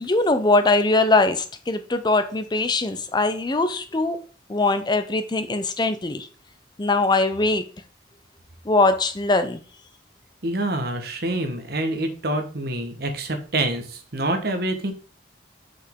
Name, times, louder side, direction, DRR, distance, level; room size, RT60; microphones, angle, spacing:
voice 1, 0.0-4.2 4.5-6.3 6.8-7.6 8.7-9.6, left 2 dB, 25° left, 0.5 m, -21 dB
voice 2, 10.4-14.9, right 1 dB, 55° right, 1.2 m, -26 dB
5.9 x 5.5 x 3.6 m
head